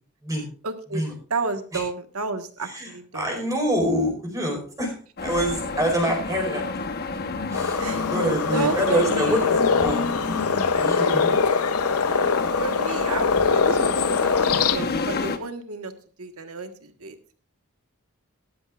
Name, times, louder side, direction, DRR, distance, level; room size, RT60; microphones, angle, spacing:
voice 1, 0.6-1.0 1.3-3.3 7.8-8.1 8.5-9.5 12.6-15.9 16.2-17.2, right 4 dB, 80° right, 7 dB, 1.4 m, -31 dB
voice 2, 2.6-4.9 5.2-6.7 7.5-7.8 8.1-10.1 10.8-11.4, equal, 15° right, 1 dB, 4.6 m, -26 dB
sound 1, 5.2-15.4, left 3 dB, 45° left, 1.1 m, -30 dB
sound 2, 7.5-14.8, left 5 dB, 80° left, 0.7 m, -23 dB
18.5 x 12.0 x 2.4 m, 0.39 s
head